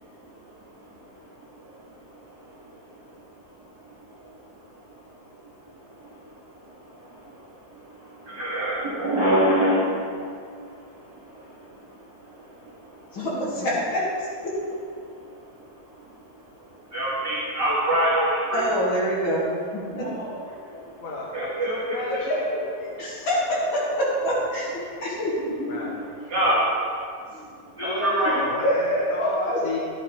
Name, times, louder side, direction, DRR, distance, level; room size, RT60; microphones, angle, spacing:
voice 1, 8.3-9.9 16.9-18.6 20.2-20.3 21.3-22.0 26.3-26.6 27.8-28.3, right 1 dB, 60° right, -9 dB, 2.5 m, -23 dB
voice 2, 13.1-14.1 14.4-14.5 18.5-20.1 22.8-25.8 27.3-27.5 28.6-29.6, equal, 80° left, -6 dB, 3.1 m, -26 dB
voice 3, 21.0-22.4 25.7-26.0 26.5-26.6 27.8-29.8, left 2 dB, 50° left, -3 dB, 1.2 m, -32 dB
14.0 x 8.5 x 3.5 m, 2.3 s
omnidirectional pair, 2.1 m